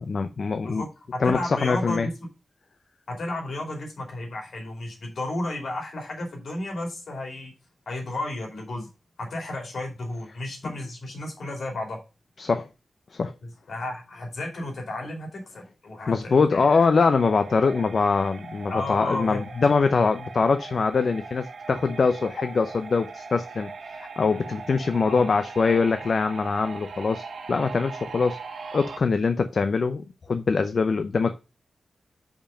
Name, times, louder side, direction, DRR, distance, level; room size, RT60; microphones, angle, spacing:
voice 1, 0.0-0.8 1.2-2.1 12.4-12.7 13.1-13.3 16.1-28.4 28.7-31.4, left 4 dB, 55° left, 0.5 m, -23 dB
voice 2, 0.6-2.1 3.1-7.5 7.9-8.9 9.2-12.0 13.7-16.9 18.7-19.4 25.0-25.3, left 2 dB, 70° left, 2.7 m, -33 dB
sound 1, 17.0-29.0, right 4 dB, 80° right, 1.3 m, -40 dB
5.2 x 5.1 x 4.9 m
wide cardioid pair, 120°, 0 cm